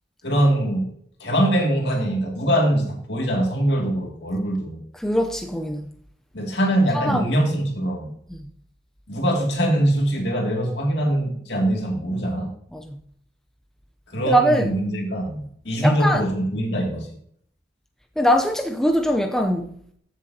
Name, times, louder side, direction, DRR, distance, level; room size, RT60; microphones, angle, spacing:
voice 1, 0.2-0.9 1.2-4.8 6.3-8.1 9.1-12.5 14.1-17.1, right 1 dB, 75° left, 2.4 m, -22 dB
voice 2, 5.0-5.9 6.9-7.3 12.7-13.0 14.2-14.7 15.8-16.2 18.2-19.7, equal, 5° left, 0.5 m, -21 dB
14.5 x 7.2 x 2.8 m
head